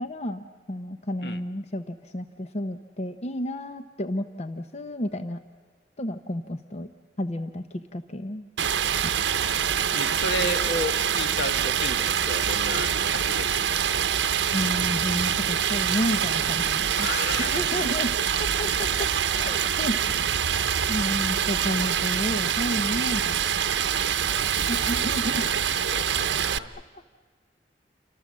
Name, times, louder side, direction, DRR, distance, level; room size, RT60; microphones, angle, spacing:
voice 1, 0.0-5.4 6.0-6.9 7.2-8.4 9.0-9.1 14.5-17.1 17.4-18.1 18.4-19.1 19.4-20.2 20.9-23.5 24.7-25.5, left 1 dB, 40° left, 9 dB, 0.7 m, -31 dB
Stream, 8.6-26.6, right 8 dB, 85° right, 0.7 m, -25 dB
voice 2, 9.9-13.6 17.0-17.8 20.1-21.6 23.9-24.2 25.3-26.7, left 1 dB, 65° left, 9 dB, 1.2 m, -34 dB
29.0 x 25.0 x 7.4 m, 1.5 s
head